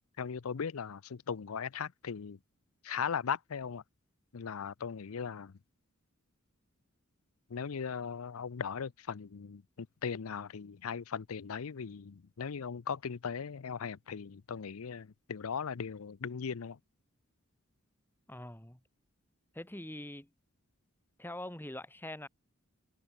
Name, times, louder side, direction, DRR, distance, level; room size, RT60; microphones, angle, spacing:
voice 1, 0.2-2.4 2.8-3.8 4.3-5.5 7.5-16.8, left 6 dB, 80° left, 0.6 m, -38 dB
voice 2, 18.3-18.8 19.5-20.3 21.2-22.3, left 1 dB, 10° left, 1.9 m, -43 dB
head